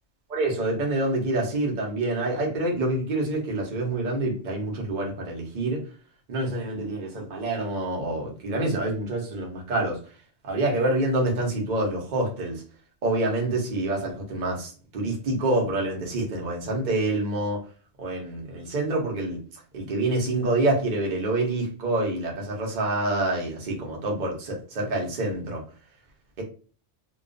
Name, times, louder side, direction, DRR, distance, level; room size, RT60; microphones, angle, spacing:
voice 1, 0.3-5.8 6.3-10.0 10.5-12.6 13.0-17.6 18.0-19.4 19.7-25.6 26.4-26.5, right 2 dB, 45° right, -1 dB, 0.7 m, -27 dB
2.2 x 2.2 x 2.5 m, 0.39 s
omnidirectional pair, 1.4 m